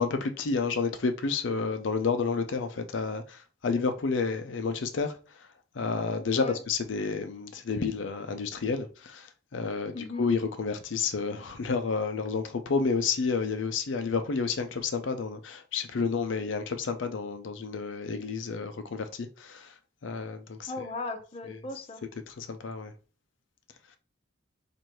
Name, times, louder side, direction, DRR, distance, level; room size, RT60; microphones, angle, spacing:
voice 1, 0.0-5.2 5.8-9.3 9.5-19.7 20.0-20.7 22.3-22.9, left 4 dB, 75° left, 0.5 m, -30 dB
voice 2, 9.9-10.3 20.7-22.0, left 3 dB, 30° left, 0.7 m, -37 dB
4.6 x 2.6 x 4.4 m
head